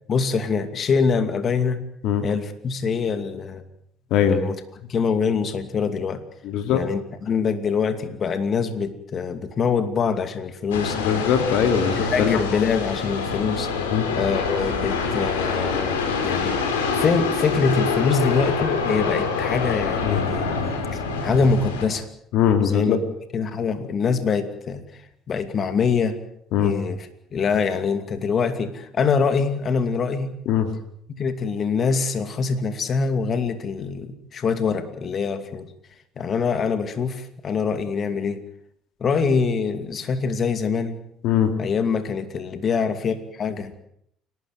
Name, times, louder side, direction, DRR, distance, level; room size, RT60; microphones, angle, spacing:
voice 1, 0.1-1.8 2.2-3.6 4.3-4.6 4.9-6.2 6.7-11.0 11.4-11.5 11.9-13.7 14.2-20.5 20.9-22.1 22.6-23.0 23.3-26.2 26.6-30.3 31.2-35.7 36.2-38.4 39.0-41.0 41.6-43.7, left 5 dB, 45° left, 9 dB, 2.6 m, -24 dB
voice 2, 6.4-6.8 11.0-12.4 13.9-14.1 20.0-20.2 22.3-23.0 26.5-26.7 30.5-30.7 41.2-41.5, left 8 dB, 70° left, 8 dB, 2.6 m, -20 dB
sound 1, 10.7-21.9, left 5 dB, 90° left, 4.0 m, -25 dB
29.0 x 13.0 x 9.3 m, 0.71 s
hypercardioid pair, 65°, 0 cm